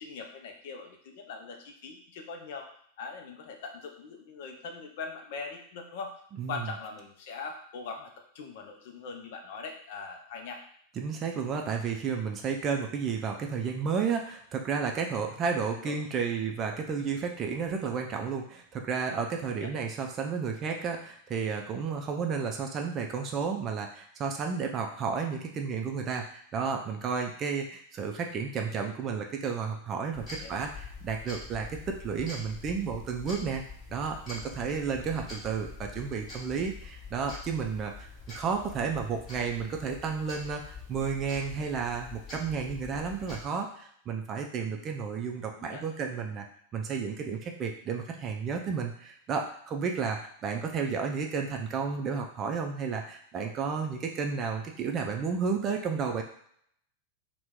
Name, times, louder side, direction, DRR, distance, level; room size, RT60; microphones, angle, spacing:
voice 1, 0.0-2.7 3.0-6.1 6.5-10.6 15.5-16.0 19.5-19.8 30.4-30.5 35.2-35.3 44.8-44.9 45.5-45.8, left 4 dB, 50° left, 3 dB, 0.5 m, -41 dB
voice 2, 11.0-33.6 33.9-38.1 38.3-46.5 46.7-56.2, right 5 dB, 30° right, 2 dB, 0.4 m, -32 dB
sound 1, 30.1-43.4, left 3 dB, 25° left, 1.1 m, -45 dB
2.8 x 2.2 x 3.5 m, 0.65 s
figure-of-eight pair, 90°, 0 cm